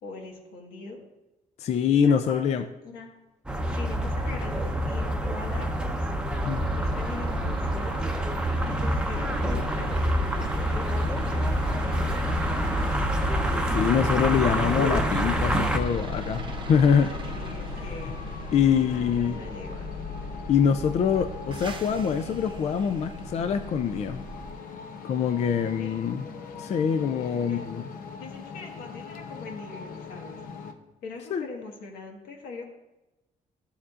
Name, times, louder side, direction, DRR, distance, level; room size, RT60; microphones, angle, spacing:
voice 1, 0.0-1.0 1.8-3.1 3.6-8.4 8.6-12.1 13.0-13.1 17.0-18.5 18.9-19.9 25.8-26.0 27.4-27.6 28.2-30.4 31.0-32.6, left 3 dB, 90° left, 1 dB, 1.6 m, -42 dB
voice 2, 1.6-2.6 6.5-6.7 13.7-16.4 16.7-17.1 18.5-19.4 20.5-24.2 25.0-26.2 26.6-27.8 31.3-31.5, left 7 dB, 45° left, 8 dB, 0.4 m, -24 dB
sound 1, 3.5-15.8, right 1 dB, 5° right, 0.7 m, -27 dB
sound 2, 6.3-24.5, left 1 dB, 35° right, 0.9 m, -37 dB
sound 3, 10.9-30.7, left 5 dB, 70° left, 0.8 m, -41 dB
12.5 x 7.1 x 2.5 m, 1.0 s
cardioid pair, 130°, 15 cm